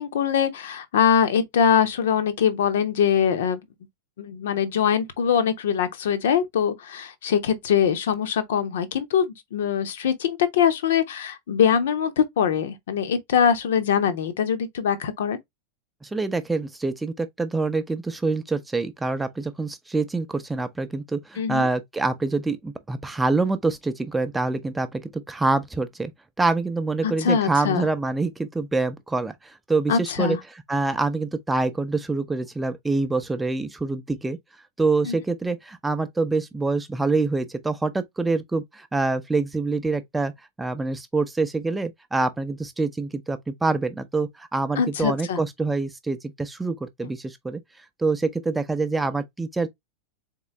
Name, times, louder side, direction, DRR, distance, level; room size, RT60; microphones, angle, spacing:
voice 1, 0.0-3.6 4.2-15.4 21.4-21.7 27.0-27.9 29.9-30.4 35.0-35.1 44.8-45.4, left 8 dB, 60° left, 0.8 m, -23 dB
voice 2, 16.0-26.1 26.4-30.4 30.7-34.4 34.8-40.3 40.6-47.6 48.0-49.7, right 3 dB, 10° right, 0.5 m, -26 dB
4.0 x 3.7 x 3.0 m
figure-of-eight pair, 90°, 0 cm